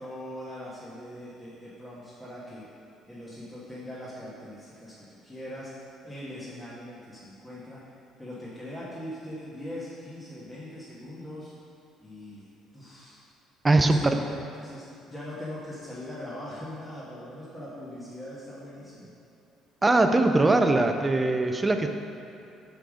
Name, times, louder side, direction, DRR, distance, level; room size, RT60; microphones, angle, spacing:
voice 1, 0.0-2.7 3.1-5.7 6.0-7.8 8.2-11.5 12.0-12.4 12.7-13.2 13.8-19.1, left 1 dB, 10° left, -10 dB, 1.3 m, -41 dB
voice 2, 13.6-14.1 19.8-21.9, right 2 dB, 15° right, 6 dB, 0.4 m, -21 dB
5.7 x 5.1 x 6.3 m, 2.8 s
cardioid pair, 140°, 0 cm